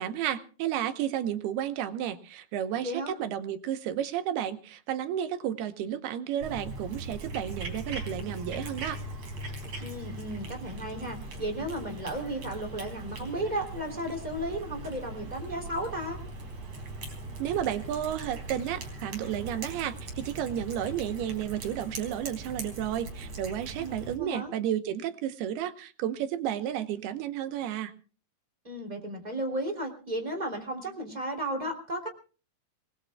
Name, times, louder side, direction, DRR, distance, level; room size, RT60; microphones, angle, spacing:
voice 1, 0.0-9.0 17.4-27.9, right 10 dB, 75° right, 10 dB, 2.9 m, -32 dB
voice 2, 2.8-3.1 9.8-16.2 23.8-24.5 28.6-32.1, right 1 dB, 10° right, 3 dB, 2.9 m, -34 dB
Cat, 6.4-24.2, right 2 dB, 35° right, 4.8 m, -40 dB
26.5 x 20.0 x 2.3 m, 0.36 s
omnidirectional pair, 4.7 m